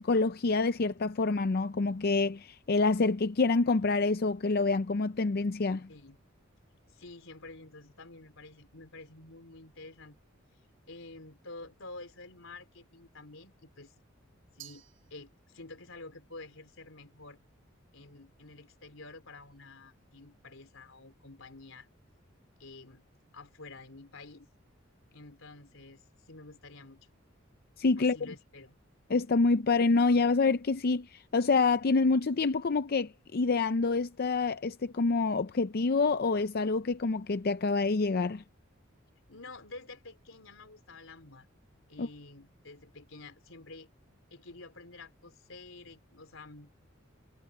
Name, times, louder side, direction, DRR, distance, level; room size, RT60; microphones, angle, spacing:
voice 1, 0.0-5.9 27.8-28.2 29.1-38.4 42.0-42.1, left 3 dB, 50° left, 0.5 m, -27 dB
voice 2, 5.9-6.2 6.9-10.2 10.9-13.9 14.5-14.9 15.1-17.4 17.9-21.9 22.6-23.0 23.3-24.5 25.1-27.1 28.0-28.8 39.3-41.5 41.9-43.9 44.3-46.7, left 3 dB, 85° left, 3.7 m, -49 dB
Glass, 14.6-15.8, right 13 dB, 80° right, 4.4 m, -54 dB
head